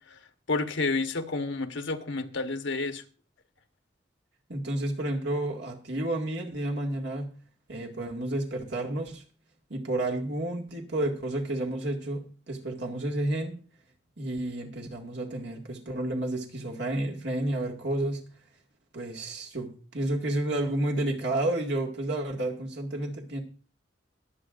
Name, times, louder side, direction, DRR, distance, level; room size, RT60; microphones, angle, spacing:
voice 1, 0.5-3.0, left 3 dB, 85° left, 1.1 m, -30 dB
voice 2, 4.5-7.3 7.7-9.2 9.7-12.2 12.5-13.6 14.2-18.2 18.9-23.4, right 1 dB, 70° right, 2.0 m, -31 dB
22.0 x 8.4 x 2.5 m
head